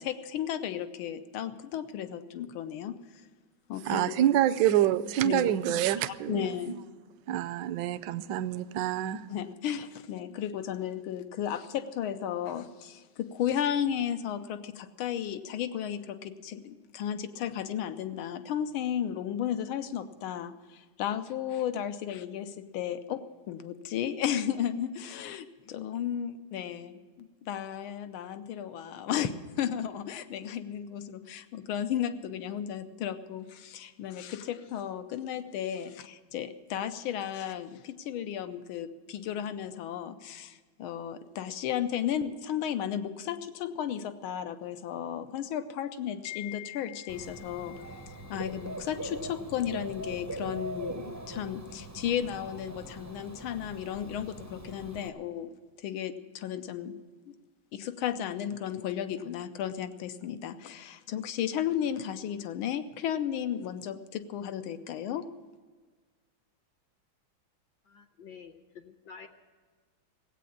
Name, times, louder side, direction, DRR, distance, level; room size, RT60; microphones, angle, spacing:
voice 1, 0.0-3.0 3.7-4.2 5.2-5.5 6.1-6.8 9.3-29.3 29.6-56.9 57.7-65.3, left 9 dB, 90° left, 10 dB, 1.6 m, -34 dB
voice 2, 3.9-6.5 7.3-9.3, right 12 dB, 70° right, 12 dB, 1.1 m, -27 dB
Dog / Bird, 47.1-55.1, right 1 dB, 25° right, 0.3 m, -42 dB
voice 3, 67.9-69.3, left 6 dB, 65° left, 7 dB, 1.2 m, -49 dB
16.5 x 8.5 x 8.5 m, 1.4 s
omnidirectional pair, 2.2 m